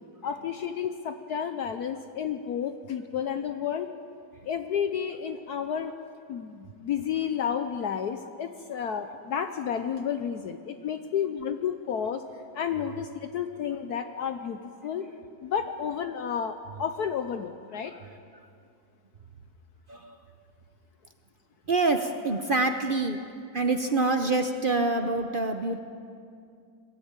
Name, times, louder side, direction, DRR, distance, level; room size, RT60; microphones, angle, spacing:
voice 1, 0.2-3.9 4.4-5.9 6.3-12.2 12.5-15.0 15.4-18.0, left 8 dB, 65° left, 8 dB, 1.2 m, -31 dB
voice 2, 21.7-23.2 23.5-25.8, right 3 dB, 45° right, 6 dB, 0.7 m, -26 dB
22.5 x 13.5 x 8.8 m, 2.4 s
omnidirectional pair, 2.0 m